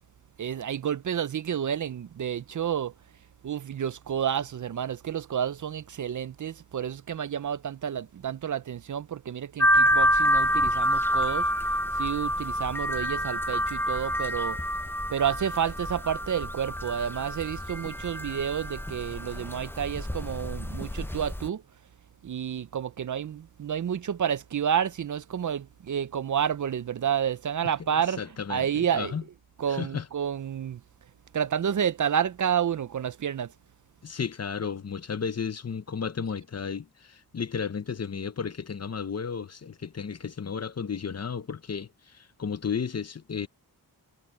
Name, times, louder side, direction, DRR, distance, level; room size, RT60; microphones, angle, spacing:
voice 1, 0.4-2.9 3.4-11.5 11.9-14.6 15.1-21.6 22.2-29.1 29.6-30.8 31.3-33.5, right 8 dB, 55° right, 0.5 m, -30 dB
sound 1, 9.6-21.5, equal, 5° left, 0.6 m, -27 dB
voice 2, 27.6-29.2 29.7-30.1 34.0-43.5, left 6 dB, 45° left, 0.8 m, -33 dB
wide cardioid pair, 110°, 36 cm